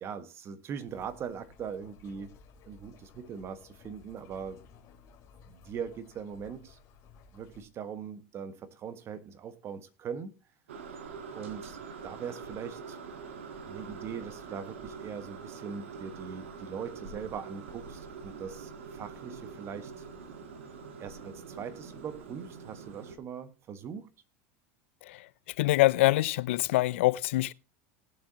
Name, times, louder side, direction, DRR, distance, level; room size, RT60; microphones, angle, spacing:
voice 1, 0.0-2.3 2.6-4.6 5.5-6.8 7.3-10.3 11.3-13.0 13.6-20.0 21.0-24.1, right 7 dB, 40° right, 1.5 m, -41 dB
sound 1, 0.9-7.6, left 6 dB, 50° left, 2.7 m, -56 dB
sound 2, 10.7-23.2, right 5 dB, 90° right, 1.7 m, -44 dB
voice 2, 25.6-27.5, left 18 dB, 75° left, 0.4 m, -24 dB
19.0 x 7.6 x 2.9 m
hypercardioid pair, 100°, 7 cm